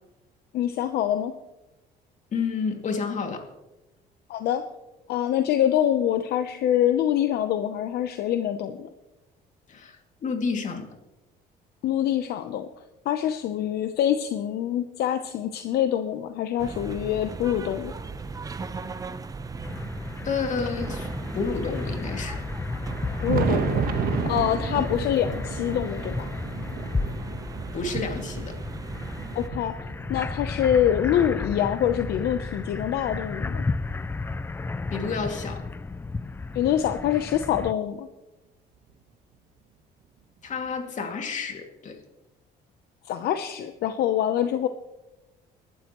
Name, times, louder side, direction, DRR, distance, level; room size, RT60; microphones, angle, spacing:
voice 1, 0.5-1.4 4.3-4.6 5.1-8.9 11.8-12.7 13.0-17.9 23.2-24.0 24.2-26.3 29.3-29.7 30.1-33.6 36.5-38.1 43.1-44.7, left 10 dB, 70° left, 8 dB, 0.8 m, -25 dB
voice 2, 2.3-3.5 9.7-10.9 20.2-22.4 27.7-28.6 34.9-35.6 40.4-42.0, left 5 dB, 45° left, 4 dB, 2.4 m, -30 dB
sound 1, 16.6-29.5, right 4 dB, 20° right, 0.8 m, -38 dB
sound 2, 19.6-37.7, left 3 dB, 15° left, 0.4 m, -33 dB
Thunder, 22.8-31.3 32.0-33.7 34.8-34.9 35.5-35.6 37.5-37.6 38.9-39.0 40.6-40.7, right 7 dB, 60° right, 1.3 m, -33 dB
23.5 x 12.0 x 3.1 m, 1.0 s
cardioid pair, 110°, 17 cm